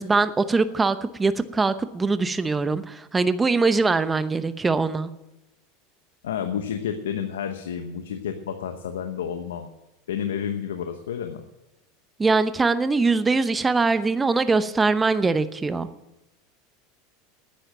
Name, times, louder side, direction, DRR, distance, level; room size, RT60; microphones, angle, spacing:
voice 1, 0.0-5.1 12.2-15.9, right 4 dB, 15° right, 0.8 m, -22 dB
voice 2, 6.2-9.7 10.1-11.4, left 8 dB, 90° left, 0.9 m, -30 dB
10.0 x 9.0 x 8.9 m
hypercardioid pair, 105°, 0 cm